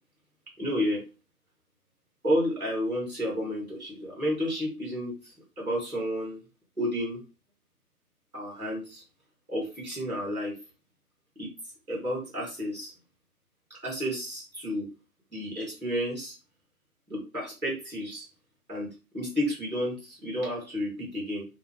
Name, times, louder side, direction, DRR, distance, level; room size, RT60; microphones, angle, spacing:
voice 1, 0.6-1.0 2.2-6.4 6.8-7.2 8.3-9.0 9.5-10.5 11.4-11.5 11.9-12.9 13.7-14.9 15.3-16.3 17.1-18.3 18.7-18.9 19.1-21.5, equal, ahead, -28 dB, 1.1 m, -31 dB
2.6 x 2.3 x 3.3 m, 0.31 s
figure-of-eight pair, 155°, 46 cm